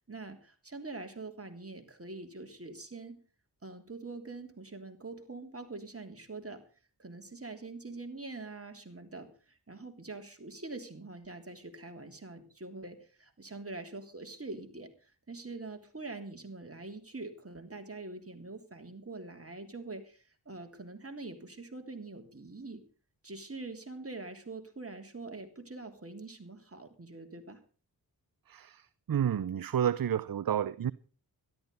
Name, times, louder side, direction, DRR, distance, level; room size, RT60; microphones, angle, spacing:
voice 1, 0.1-3.2 3.6-6.6 7.0-22.8 23.2-27.6, right 3 dB, 35° right, 3.3 m, -44 dB
voice 2, 29.1-30.9, right 9 dB, 55° right, 0.7 m, -29 dB
13.0 x 12.0 x 5.5 m
cardioid pair, 40°, 41 cm